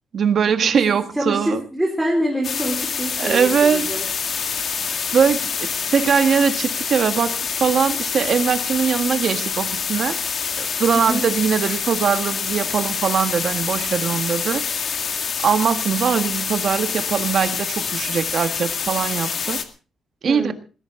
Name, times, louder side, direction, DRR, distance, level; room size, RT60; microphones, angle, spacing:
voice 1, 0.1-1.6 3.2-4.0 5.1-10.2 10.6-14.6 15.4-19.6 20.2-20.5, right 6 dB, 50° right, 9 dB, 1.5 m, -21 dB
voice 2, 1.2-4.0 10.9-11.2 20.2-20.5, equal, 5° right, -1 dB, 3.8 m, -25 dB
sound 1, 2.4-19.6, left 6 dB, 45° left, 2.0 m, -26 dB
20.0 x 15.5 x 3.8 m, 0.37 s
cardioid pair, 155°, 0 cm